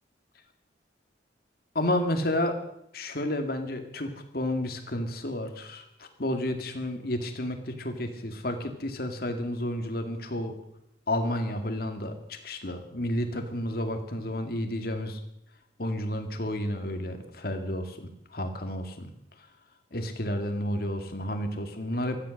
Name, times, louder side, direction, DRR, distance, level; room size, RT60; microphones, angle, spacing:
voice 1, 1.7-2.6 2.9-10.5 11.1-15.2 15.8-19.1 19.9-22.2, left 1 dB, 55° left, 6 dB, 2.2 m, -31 dB
16.5 x 13.5 x 6.5 m, 0.79 s
head